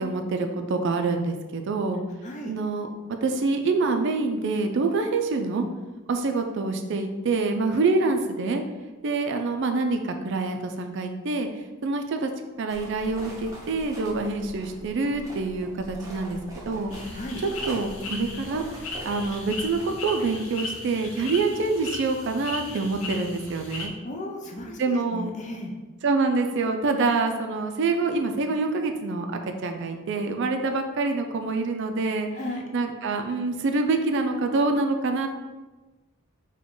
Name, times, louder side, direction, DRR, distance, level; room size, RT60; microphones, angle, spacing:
voice 1, 0.0-2.0 2.5-2.9 3.2-5.6 6.1-8.6 9.0-11.5 11.8-12.3 12.6-16.4 16.7-16.9 17.4-18.6 19.0-23.9 24.8-25.3 26.0-29.3 29.6-32.3 32.7-35.3, right 3 dB, 55° right, 5 dB, 0.4 m, -26 dB
voice 2, 2.2-2.5 7.7-7.8 17.1-17.4 24.0-24.8 25.1-25.7 32.3-32.6, left 1 dB, 35° left, 0 dB, 0.6 m, -35 dB
sound 1, 12.7-19.9, right 1 dB, 15° right, 0.8 m, -43 dB
sound 2, 16.9-23.9, left 3 dB, 75° left, 0.7 m, -37 dB
4.8 x 2.2 x 3.7 m, 1.2 s
head